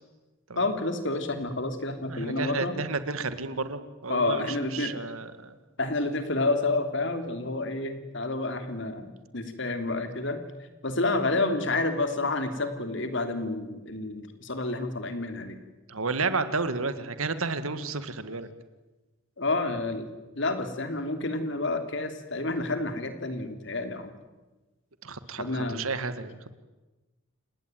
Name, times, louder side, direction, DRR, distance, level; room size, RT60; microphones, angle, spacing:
voice 1, 0.6-2.8 4.1-4.9 5.8-10.4 10.8-15.6 19.4-20.1 20.3-24.1 25.4-25.8, left 2 dB, 55° left, 8 dB, 3.2 m, -29 dB
voice 2, 2.1-4.5 4.7-5.6 15.9-18.5 25.0-26.3, right 4 dB, 85° right, 11 dB, 2.0 m, -31 dB
30.0 x 18.5 x 9.3 m, 1.2 s
head